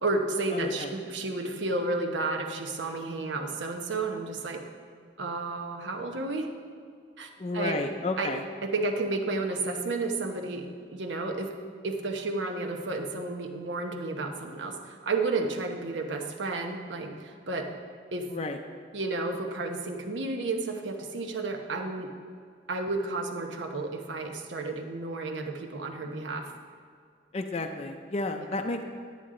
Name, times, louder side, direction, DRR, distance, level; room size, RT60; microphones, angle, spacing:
voice 1, 0.0-4.6 5.2-6.5 7.2-7.8 8.2-8.3 8.6-11.5 11.8-17.7 18.1-18.3 18.9-22.1 22.7-26.5 28.3-28.5, right 3 dB, 90° right, 4 dB, 0.9 m, -32 dB
voice 2, 0.5-0.9 7.4-8.4 18.3-18.6 27.3-28.8, left 2 dB, 35° left, 4 dB, 0.4 m, -32 dB
9.7 x 9.2 x 3.7 m, 2.1 s
head